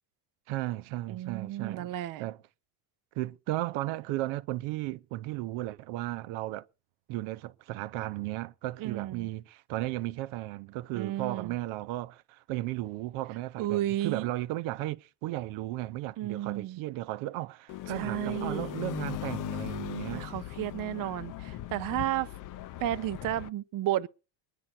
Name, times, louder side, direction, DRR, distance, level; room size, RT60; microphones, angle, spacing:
voice 1, 0.5-1.9 2.2-2.4 3.1-6.7 7.1-20.3, right 17 dB, 75° right, 0.8 m, -35 dB
voice 2, 1.1-2.3 8.8-9.3 10.9-11.5 13.6-14.3 16.2-16.8 17.9-18.7 20.1-22.3 22.8-24.1, right 14 dB, 45° right, 0.6 m, -32 dB
sound 1, 17.7-23.5, left 13 dB, 40° left, 0.6 m, -38 dB
21.0 x 10.5 x 4.3 m
cardioid pair, 140°, 48 cm